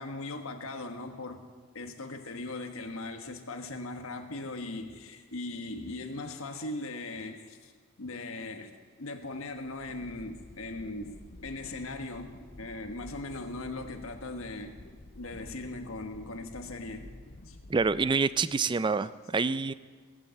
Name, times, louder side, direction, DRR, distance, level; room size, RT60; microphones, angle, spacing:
voice 1, 0.0-1.4 1.7-7.7 8.0-14.8 15.2-17.1 17.4-17.6, left 2 dB, 85° left, 6 dB, 1.4 m, -39 dB
sound 1, 9.7-18.8, left 1 dB, 55° left, 1.0 m, -50 dB
voice 2, 17.7-19.7, right 4 dB, 25° right, 16 dB, 0.4 m, -27 dB
17.5 x 8.6 x 7.5 m, 1.5 s
head